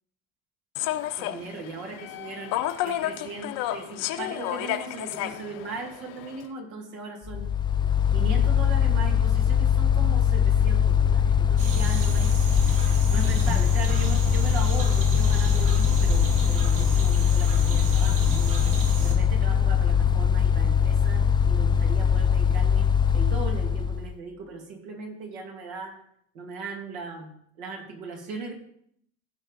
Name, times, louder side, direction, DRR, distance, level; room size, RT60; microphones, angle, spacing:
Human voice / Subway metro underground, 0.7-6.5, left 13 dB, 75° left, 0.9 m, -32 dB
voice 1, 1.2-2.5 2.8-7.5 8.1-12.3 13.1-18.7 19.0-22.9 23.1-26.0 26.3-27.3 27.6-28.5, right 3 dB, 90° right, 1 dB, 2.5 m, -38 dB
Mechanical fan, 7.3-24.1, left 7 dB, 15° left, 0.4 m, -22 dB
sound 1, 11.6-19.1, right 2 dB, 65° right, 3.4 m, -33 dB
16.0 x 5.6 x 4.0 m, 0.67 s
supercardioid pair, 95°, 34 cm